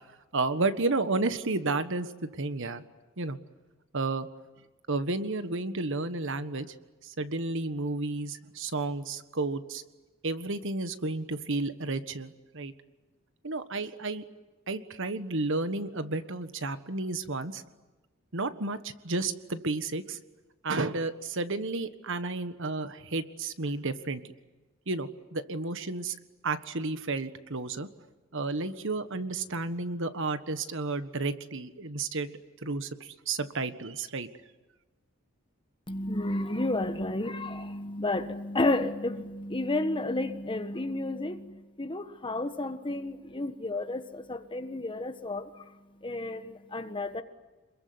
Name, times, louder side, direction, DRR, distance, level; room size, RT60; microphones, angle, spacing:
voice 1, 0.3-2.1 2.4-2.8 3.2-3.4 3.9-4.3 4.9-6.7 7.0-9.8 10.2-12.7 13.4-14.2 14.7-17.6 18.3-20.2 20.6-24.2 24.9-26.1 26.4-27.9 28.3-34.3, right 3 dB, 60° right, 11 dB, 1.5 m, -32 dB
voice 2, 35.9-47.2, left 2 dB, 25° left, 9 dB, 1.5 m, -32 dB
27.5 x 22.0 x 9.6 m, 1.2 s
head